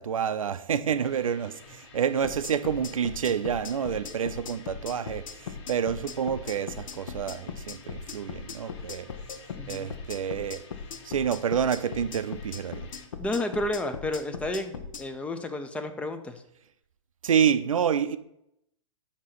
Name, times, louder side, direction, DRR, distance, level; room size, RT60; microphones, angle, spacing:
voice 1, 0.0-9.1 9.7-10.6 11.0-12.9 17.2-18.2, right 8 dB, 90° right, 0.5 m, -28 dB
sound 1, 1.0-13.1, left 5 dB, 55° left, 1.4 m, -52 dB
sound 2, 2.2-15.0, left 6 dB, 85° left, 0.8 m, -39 dB
voice 2, 9.6-9.9 13.2-16.4, left 2 dB, 5° left, 0.6 m, -31 dB
8.4 x 2.9 x 5.9 m
hypercardioid pair, 130°, 17 cm